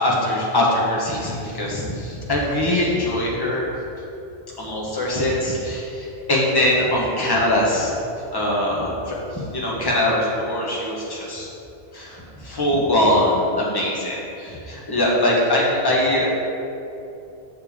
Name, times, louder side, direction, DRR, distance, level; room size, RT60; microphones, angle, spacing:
voice 1, 0.0-3.7 4.6-7.9 8.3-11.5 11.9-16.3, left 1 dB, 20° left, -4 dB, 1.1 m, -22 dB
6.9 x 6.6 x 3.6 m, 2.8 s
omnidirectional pair, 1.3 m